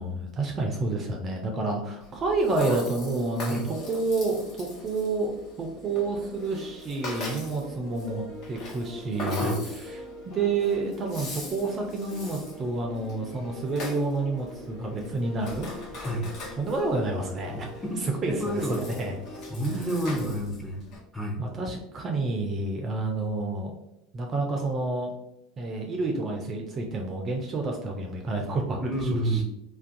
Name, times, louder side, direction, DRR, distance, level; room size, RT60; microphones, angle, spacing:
voice 1, 0.0-5.3 5.6-16.0 16.6-17.7 18.0-19.1 19.7-19.9 20.2-20.4 21.4-23.7 24.1-25.1 25.6-29.4, right 3 dB, 35° right, 2 dB, 0.4 m, -29 dB
Rattle (instrument), 2.0-21.0, left 1 dB, 50° left, 0.7 m, -40 dB
sound 1, 5.8-19.9, left 2 dB, 65° left, 1.1 m, -44 dB
voice 2, 17.5-18.8 19.5-20.8 21.1-21.4 28.8-29.4, right 1 dB, 5° left, 0 dB, 0.6 m, -30 dB
2.3 x 2.2 x 2.5 m, 0.81 s
figure-of-eight pair, 75°, 0 cm